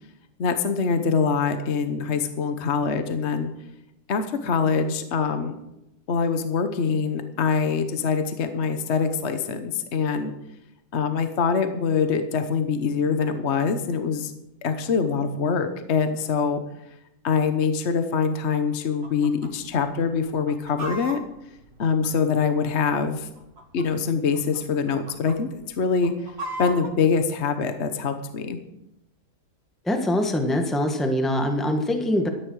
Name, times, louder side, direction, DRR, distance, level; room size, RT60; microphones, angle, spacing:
voice 1, 0.4-3.5 4.1-5.6 6.1-10.3 10.9-14.3 14.6-16.6 17.2-21.2 21.8-23.3 23.7-26.3 26.6-28.6, left 5 dB, 45° left, 8 dB, 1.1 m, -24 dB
Chicken rooster, 19.0-19.5 19.8-19.9 20.3-22.6 23.3-24.0 24.3-24.6 24.9-25.4 25.8-26.9, right 1 dB, 40° right, 1.8 m, -36 dB
voice 2, 29.8-32.3, left 1 dB, ahead, 5 dB, 1.2 m, -23 dB
13.5 x 10.0 x 6.3 m, 0.86 s
omnidirectional pair, 1.8 m